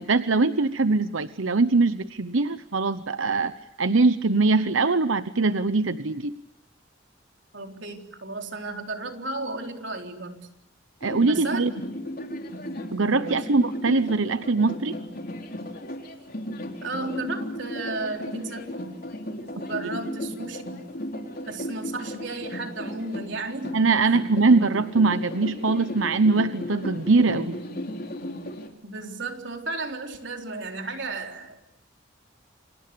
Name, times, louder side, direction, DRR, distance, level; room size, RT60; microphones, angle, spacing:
voice 1, 0.0-3.5 3.8-6.3 11.0-11.7 12.9-15.0 23.7-27.6, right 3 dB, 90° right, 11 dB, 1.0 m, -22 dB
voice 2, 7.5-10.5 11.3-11.7 13.2-13.5 16.8-18.8 19.6-20.8 21.5-24.2 28.8-31.6, right 2 dB, 65° right, 4 dB, 4.0 m, -34 dB
sound 1, 11.0-28.7, left 1 dB, 50° left, 3.7 m, -36 dB
29.5 x 27.0 x 7.0 m, 0.83 s
head